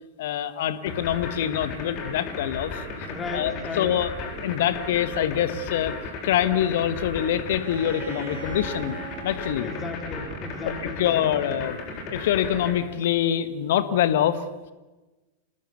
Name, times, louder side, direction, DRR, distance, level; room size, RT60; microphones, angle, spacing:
voice 1, 0.2-2.8 3.3-5.9 6.2-9.0 9.2-9.7 11.0-11.8 12.1-14.4, left 10 dB, 55° left, 13 dB, 1.6 m, -25 dB
sound 1, 0.9-12.7, left 3 dB, 40° left, 7.9 m, -35 dB
voice 2, 3.0-3.9 9.6-11.4, left 3 dB, 20° left, 4 dB, 4.4 m, -35 dB
Bowed string instrument, 7.6-11.4, right 6 dB, 55° right, 5.4 m, -41 dB
27.0 x 19.5 x 8.4 m, 1.2 s
figure-of-eight pair, 90°, 0 cm